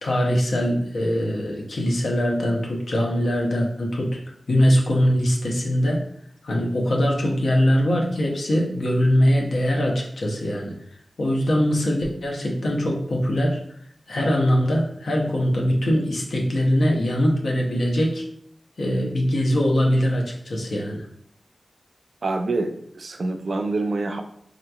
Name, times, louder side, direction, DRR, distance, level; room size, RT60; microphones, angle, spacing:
voice 1, 0.0-4.2 4.5-6.0 6.4-10.7 11.2-13.6 14.1-18.2 18.8-21.0, equal, 80° left, -1 dB, 0.7 m, -22 dB
voice 2, 22.2-24.2, right 2 dB, 70° right, 6 dB, 0.4 m, -26 dB
3.7 x 2.9 x 2.3 m, 0.68 s
wide cardioid pair, 75°, 0 cm